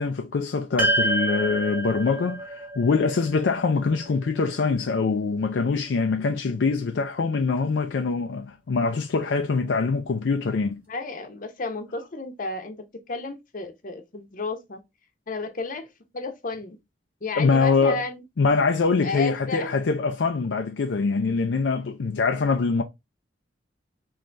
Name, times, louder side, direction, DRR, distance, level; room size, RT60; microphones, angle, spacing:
voice 1, 0.0-10.8 17.4-18.0 18.4-22.8, left 4 dB, 75° left, 0.4 m, -24 dB
sound 1, 0.8-5.2, right 1 dB, 10° right, 1.0 m, -29 dB
voice 2, 10.9-14.8 15.3-15.9 16.1-16.8 17.2-18.2 19.0-19.7, left 3 dB, 50° left, 0.8 m, -32 dB
3.9 x 3.2 x 3.3 m
head